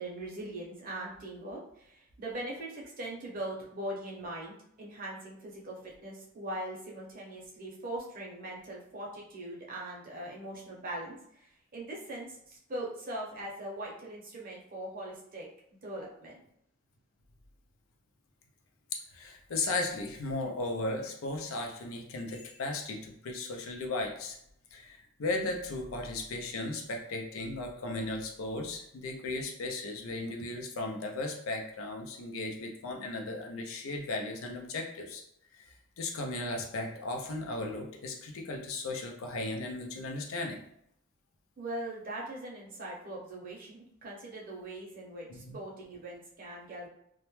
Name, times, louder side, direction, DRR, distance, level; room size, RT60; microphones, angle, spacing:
voice 1, 0.0-15.5 15.8-16.3 41.6-46.9, right 1 dB, 45° right, -2 dB, 0.7 m, -41 dB
voice 2, 19.1-24.4 24.7-35.2 35.5-40.6 45.3-45.6, left 2 dB, 75° left, 2 dB, 0.5 m, -36 dB
2.1 x 2.1 x 3.0 m, 0.73 s
head